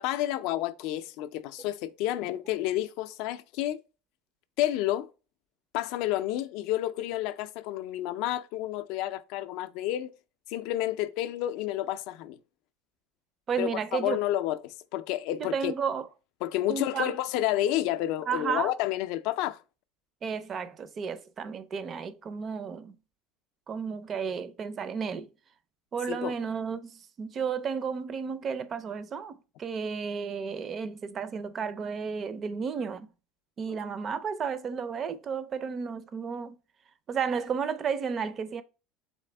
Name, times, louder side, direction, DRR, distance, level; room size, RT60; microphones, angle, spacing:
voice 1, 0.0-3.8 4.6-5.1 5.7-10.1 10.5-12.4 13.6-15.7 16.4-19.6 26.1-26.4 33.7-33.8, left 14 dB, 60° left, 0.4 m, -30 dB
voice 2, 13.5-14.2 15.4-16.1 16.7-17.1 18.3-18.7 20.2-23.0 23.7-25.3 25.9-33.1 33.6-36.6 37.1-38.6, right 6 dB, 25° right, 0.4 m, -32 dB
4.1 x 3.5 x 3.3 m
supercardioid pair, 150°, 0 cm